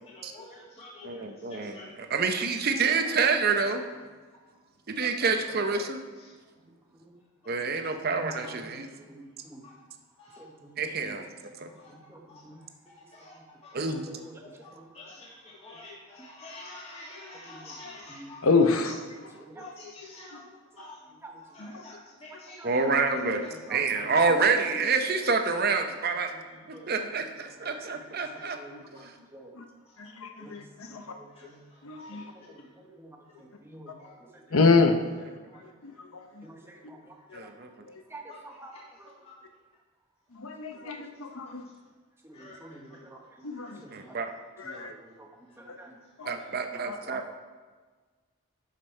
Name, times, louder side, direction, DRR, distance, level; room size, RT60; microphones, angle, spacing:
voice 1, 0.1-1.9 2.7-3.1 8.3-8.5 9.6-9.7 10.2-10.4 11.8-11.9 12.3-12.4 13.1-14.0 14.6-18.9 19.2-20.5 20.8-21.0 21.5-22.6 23.2-23.5 24.0-24.1 25.1-25.3 26.7-26.8 27.8-27.9 28.4-28.5 28.9-29.0 31.3-31.4 32.0-32.5 34.0-34.1 35.5-35.6 37.3-37.4 39.2-39.3 41.4-41.5 42.3-43.0 43.9-44.0 44.7-44.8 46.4-46.5, left 2 dB, 30° left, -6 dB, 2.0 m, -48 dB
voice 2, 1.0-3.8 4.9-6.0 7.5-8.9 10.8-11.3 11.6-11.7 13.7-14.1 22.6-23.4 23.7-26.3 26.9-28.6 28.9-29.1 37.3-37.7 43.9-44.3 46.3-47.2, right 4 dB, 45° right, 6 dB, 0.7 m, -27 dB
voice 3, 5.3-6.0 6.9-7.1 7.7-7.8 8.3-8.7 9.1-9.7 10.4-11.2 11.9-12.6 13.4-13.5 14.1-14.4 14.7-14.9 17.4-17.8 18.1-18.3 19.3-19.7 21.2-21.4 21.7-21.8 22.6-22.9 23.5-24.5 25.9-26.0 26.3-28.8 29.3-29.5 30.4-30.6 30.9-31.6 32.1-33.9 34.3-34.6 36.4-37.1 37.4-37.5 38.1-38.7 39.0-39.1 40.7-41.0 42.2-43.2 43.8-44.2 44.6-46.0 46.3-46.4 46.7-47.3, right 2 dB, 10° right, 1 dB, 1.0 m, -49 dB
voice 4, 18.4-19.3 19.6-19.7 20.8-20.9 22.9-23.4 28.7-28.8 29.6-29.7 30.0-31.1 31.8-32.2 34.5-34.9 35.8-36.4 37.3-37.4 40.3-41.6 43.4-43.8 44.6-44.9 45.7-45.8 46.2-46.3 46.9-47.0, left 4 dB, 75° left, 5 dB, 0.8 m, -27 dB
11.5 x 5.3 x 4.4 m, 1.4 s
head